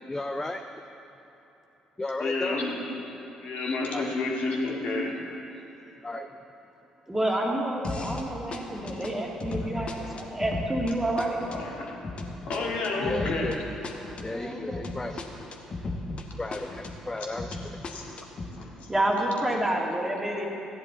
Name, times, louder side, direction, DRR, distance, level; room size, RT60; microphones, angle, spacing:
voice 1, 0.1-0.6 2.0-2.6 3.1-3.2 3.9-4.2 5.5-5.6 6.0-6.3 13.0-13.6 13.9-15.3 16.4-17.8, left 2 dB, 15° left, 6 dB, 0.5 m, -34 dB
voice 2, 2.2-2.8 3.4-5.2 11.5-11.9 12.5-13.5 17.2-17.3 17.9-18.1 18.5-18.9, left 3 dB, 55° left, -2 dB, 1.9 m, -30 dB
voice 3, 7.1-11.4 14.3-14.9 18.9-20.5, right 1 dB, 15° right, -1 dB, 2.0 m, -29 dB
sound 1, 7.8-8.3 8.5-16.3 16.5-18.5, left 2 dB, 40° left, 1.2 m, -36 dB
15.0 x 10.0 x 4.0 m, 3.0 s
figure-of-eight pair, 45°, 3 cm